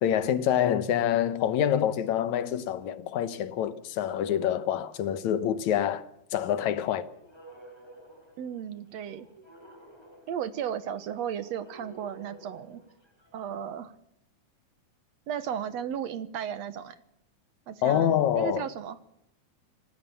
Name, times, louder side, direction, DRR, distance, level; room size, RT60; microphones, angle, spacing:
voice 1, 0.0-6.0 6.3-7.1 17.8-18.7, left 10 dB, 75° left, 2.4 m, -26 dB
sound 1, 6.6-13.5, right 1 dB, 10° left, 5.3 m, -53 dB
voice 2, 8.4-9.3 10.3-12.8 13.3-13.9 15.3-17.0 17.7-19.0, right 8 dB, 65° right, 2.1 m, -35 dB
26.5 x 17.5 x 7.0 m
omnidirectional pair, 3.4 m